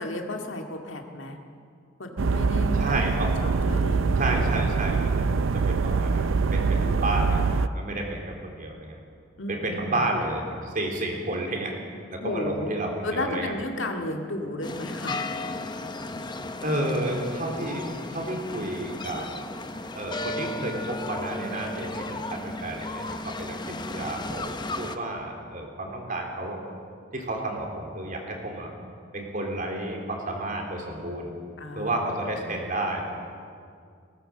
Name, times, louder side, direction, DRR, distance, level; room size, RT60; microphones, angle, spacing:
voice 1, 0.0-1.4 2.0-3.0 3.4-4.7 6.8-7.2 9.4-10.1 12.1-12.7 13.0-15.2 31.6-32.3, left 1 dB, 70° left, 3 dB, 2.1 m, -33 dB
sound 1, 2.2-7.7, right 4 dB, 80° right, 0.6 m, -24 dB
voice 2, 2.7-3.3 4.2-5.2 5.5-7.4 7.7-9.0 9.5-11.7 12.1-13.5 16.6-19.3 20.0-26.7 27.1-28.7 29.1-31.3 31.7-33.0, right 1 dB, 45° right, 1 dB, 3.6 m, -31 dB
sound 2, 14.6-25.0, left 2 dB, 25° left, 0.9 m, -35 dB
19.0 x 18.0 x 7.9 m, 2.3 s
head